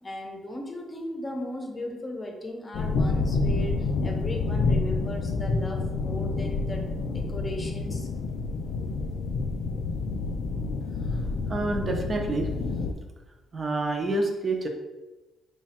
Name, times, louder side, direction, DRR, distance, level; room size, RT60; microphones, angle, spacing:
voice 1, 0.0-3.8 4.0-6.8 7.1-8.1, left 1 dB, 25° left, 2 dB, 0.7 m, -36 dB
sound 1, 2.7-12.9, left 3 dB, 80° left, 0.3 m, -28 dB
voice 2, 11.5-12.5 13.5-14.7, right 2 dB, 35° right, 3 dB, 0.6 m, -27 dB
3.1 x 2.3 x 4.2 m, 1.1 s
cardioid pair, 90°, 0 cm